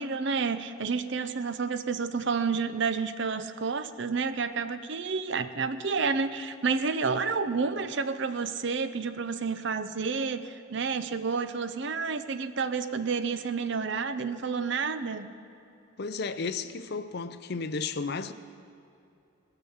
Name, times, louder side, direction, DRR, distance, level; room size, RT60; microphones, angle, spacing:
voice 1, 0.0-15.3, right 5 dB, 55° right, 0.6 m, -30 dB
voice 2, 16.0-18.3, left 4 dB, 50° left, 0.5 m, -33 dB
19.5 x 6.8 x 7.1 m
head